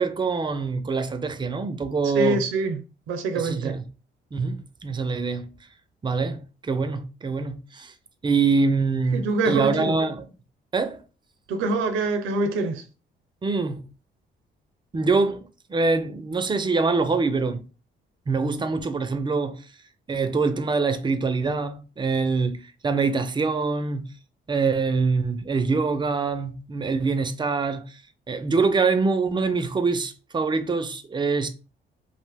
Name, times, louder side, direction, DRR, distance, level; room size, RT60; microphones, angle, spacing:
voice 1, 0.0-2.4 3.4-3.8 4.3-5.5 6.0-7.9 8.2-10.3 10.7-11.0 13.4-13.8 14.9-17.7 18.3-19.7 20.1-24.1 24.5-28.0 28.3-31.5, right 4 dB, 25° right, 0.4 m, -24 dB
voice 2, 2.1-2.8 3.1-3.7 9.1-10.0 11.5-12.8, right 3 dB, 85° right, 0.5 m, -25 dB
2.5 x 2.1 x 3.4 m
cardioid pair, 90°, 20 cm